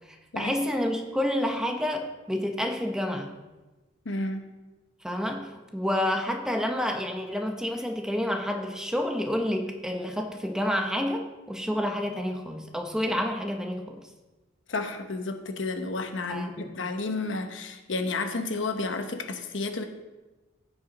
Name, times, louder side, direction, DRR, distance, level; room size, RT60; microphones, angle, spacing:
voice 1, 0.4-3.3 5.0-14.0 16.3-16.7, equal, 5° right, 3 dB, 0.9 m, -29 dB
voice 2, 4.0-4.4 14.7-19.8, left 3 dB, 90° left, 7 dB, 1.0 m, -31 dB
15.5 x 5.4 x 4.1 m, 1.1 s
head